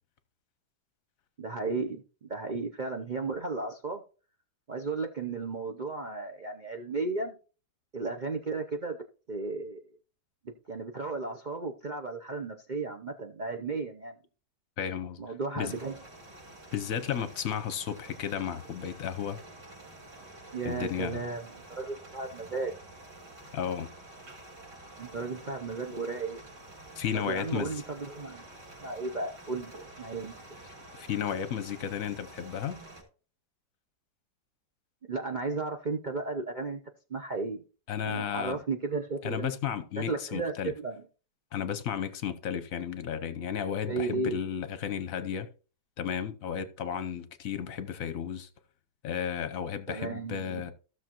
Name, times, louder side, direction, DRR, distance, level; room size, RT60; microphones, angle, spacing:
voice 1, 1.4-4.0 4.7-7.3 7.9-9.0 9.3-9.8 10.7-14.2 15.2-16.0 20.5-22.7 25.0-26.4 27.1-28.4 28.8-29.7 30.0-30.3 35.1-36.8 37.1-37.6 38.0-39.5 40.0-41.0 43.9-44.5 49.9-50.7, right 3 dB, 50° right, 0.5 m, -34 dB
voice 2, 14.8-15.2 15.6-15.7 16.7-19.4 20.6-21.2 23.5-23.9 27.0-27.8 31.0-32.8 37.9-38.6 39.2-40.7 41.5-45.5 46.0-48.5 49.0-50.7, left 8 dB, 55° left, 1.1 m, -33 dB
sound 1, 15.7-33.0, right 2 dB, 75° right, 4.5 m, -49 dB
15.0 x 6.5 x 3.0 m
omnidirectional pair, 1.9 m